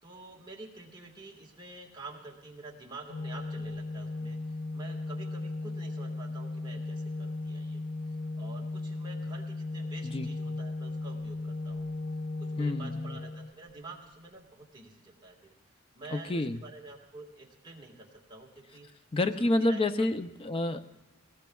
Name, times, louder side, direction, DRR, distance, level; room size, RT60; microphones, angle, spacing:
voice 1, 0.0-7.8 8.1-11.9 12.4-15.5 15.9-18.9 19.3-19.8 20.9-21.0, right 2 dB, 20° right, -2 dB, 1.6 m, -48 dB
Organ, 3.1-14.0, left 2 dB, 85° left, 0.5 m, -36 dB
voice 2, 12.6-13.2 16.1-16.6 19.1-21.0, left 2 dB, 25° left, 10 dB, 0.4 m, -29 dB
20.5 x 18.0 x 2.3 m, 0.94 s
head